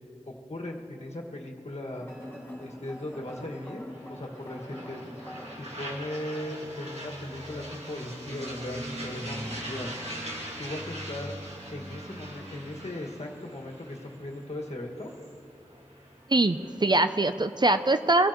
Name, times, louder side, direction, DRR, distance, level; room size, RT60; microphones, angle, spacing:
voice 1, 0.5-2.1 2.6-5.3 5.6-9.9 10.6-11.4 11.7-15.1, left 1 dB, 60° left, -1 dB, 1.8 m, -38 dB
sound 1, 1.9-5.6, left 1 dB, 15° left, 3.0 m, -44 dB
sound 2, 2.1-16.9, right 1 dB, 60° right, 2.2 m, -41 dB
voice 2, 16.3-18.3, right 2 dB, 35° right, 9 dB, 0.5 m, -23 dB
23.5 x 16.0 x 3.0 m, 2.7 s
wide cardioid pair, 60°, 12 cm